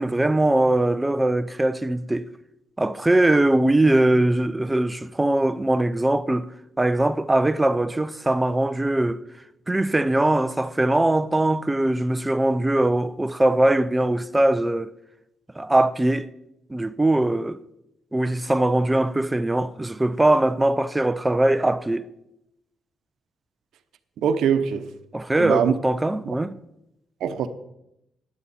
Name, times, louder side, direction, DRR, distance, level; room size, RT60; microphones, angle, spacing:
voice 1, 0.0-2.3 2.8-6.5 6.8-9.2 9.7-14.9 15.6-16.3 16.7-17.6 18.1-22.1 25.1-26.6, right 1 dB, 10° right, 0.4 m, -21 dB
voice 2, 24.2-24.9 25.4-25.7 27.2-27.5, right 7 dB, 75° right, 0.9 m, -22 dB
15.0 x 10.5 x 4.2 m
cardioid pair, 175°, 0 cm